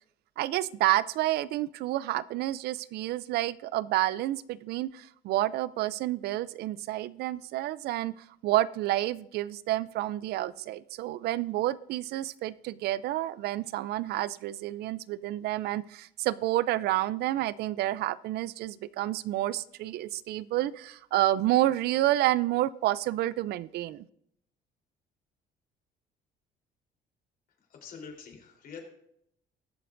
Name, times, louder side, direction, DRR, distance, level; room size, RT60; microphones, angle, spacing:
voice 1, 0.4-24.1, right 15 dB, 70° right, 19 dB, 0.4 m, -29 dB
voice 2, 27.7-28.8, left 6 dB, 60° left, 2 dB, 3.6 m, -45 dB
20.5 x 7.6 x 2.6 m, 0.73 s
cardioid pair, 110°, 17 cm